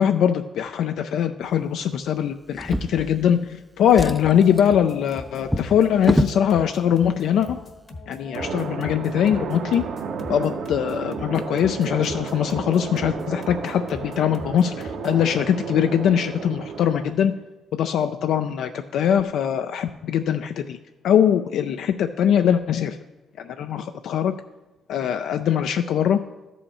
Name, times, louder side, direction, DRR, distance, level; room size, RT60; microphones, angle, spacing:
voice 1, 0.0-7.6 8.1-9.8 10.3-17.3 17.7-20.8 21.0-23.0 23.4-24.3 24.9-26.2, left 9 dB, 75° left, 8 dB, 0.4 m, -22 dB
Drawer open or close, 2.5-3.5 3.8-6.4 7.3-7.5 7.9-8.0, equal, ahead, 0.4 m, -28 dB
sound 1, 4.2-15.3, left 2 dB, 55° left, 1.2 m, -41 dB
sound 2, 8.3-17.1, right 5 dB, 70° right, 0.8 m, -33 dB
12.5 x 5.5 x 4.2 m, 1.1 s
cardioid pair, 90°, 0 cm